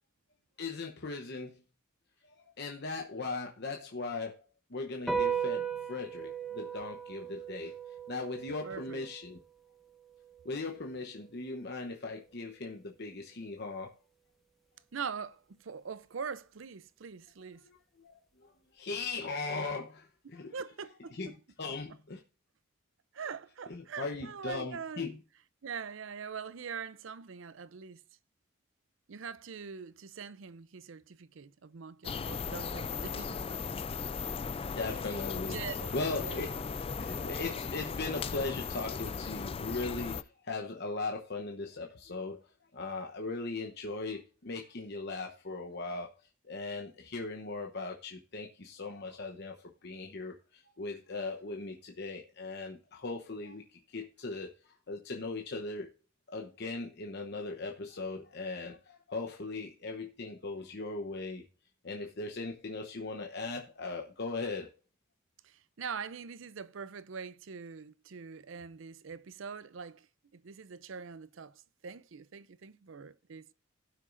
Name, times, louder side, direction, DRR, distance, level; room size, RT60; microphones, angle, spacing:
voice 1, 0.6-1.6 2.2-4.4 4.7-9.4 10.4-13.9 17.6-20.5 21.1-22.2 23.7-25.2 34.5-35.6 35.9-36.5 37.0-42.4 42.7-49.6 49.8-55.9 56.3-61.4 61.8-64.7, left 3 dB, 50° left, 0.9 m, -39 dB
sound 1, 5.1-11.8, right 6 dB, ahead, 1.0 m, -38 dB
voice 2, 8.6-9.0 14.9-17.7 20.5-21.3 23.1-25.0 25.6-28.0 29.1-33.6 35.4-35.9 36.2-36.5 65.4-70.1 70.3-73.5, right 6 dB, 65° right, 0.5 m, -43 dB
sound 2, 32.0-40.2, left 5 dB, 25° left, 0.3 m, -37 dB
16.0 x 6.3 x 2.6 m
head